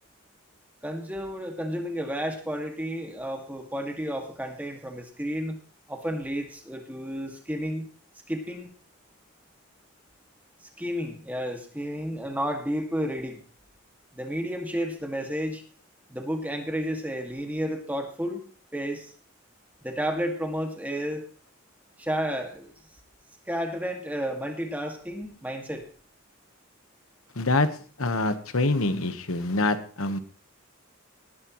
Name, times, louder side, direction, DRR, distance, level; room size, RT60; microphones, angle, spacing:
voice 1, 0.8-5.6 5.9-7.9 8.3-8.7 10.6-13.4 14.1-15.6 16.1-18.4 18.7-19.1 19.8-21.3 22.0-22.7 23.5-25.9, equal, 5° right, 3 dB, 2.1 m, -31 dB
voice 2, 27.4-27.7 28.0-30.2, left 2 dB, 70° left, 10 dB, 1.3 m, -25 dB
19.0 x 11.0 x 3.1 m, 0.40 s
head